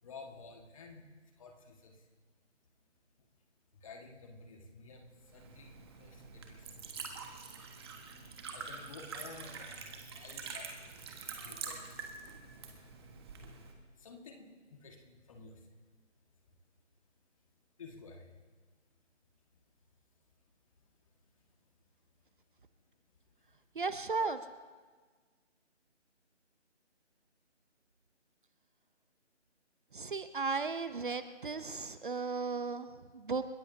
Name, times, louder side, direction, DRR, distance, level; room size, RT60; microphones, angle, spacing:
voice 1, 0.0-1.1 1.4-2.1 3.2-3.3 3.7-7.2 8.5-11.1 11.4-12.0 14.0-15.8 16.4-16.6 17.8-18.4 20.8-21.7 22.9-23.0, left 3 dB, 30° left, 3 dB, 1.8 m, -53 dB
Liquid, 5.2-13.7, right 5 dB, 20° right, 1.5 m, -46 dB
voice 2, 23.8-24.4 29.9-33.4, right 4 dB, 45° right, 11 dB, 0.8 m, -35 dB
29.5 x 15.5 x 2.8 m, 1.4 s
figure-of-eight pair, 155°, 36 cm